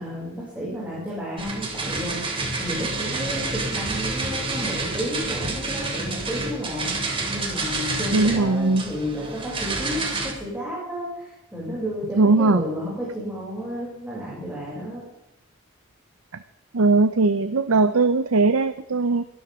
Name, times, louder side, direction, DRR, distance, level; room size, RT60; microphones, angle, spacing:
voice 1, 0.0-15.0, equal, 5° right, -7 dB, 6.4 m, -32 dB
sound 1, 1.4-10.3, right 3 dB, 25° right, 3.0 m, -29 dB
voice 2, 8.1-8.8 12.2-12.6 16.7-19.2, right 3 dB, 80° right, 10 dB, 0.7 m, -19 dB
23.0 x 12.5 x 3.7 m, 0.92 s
head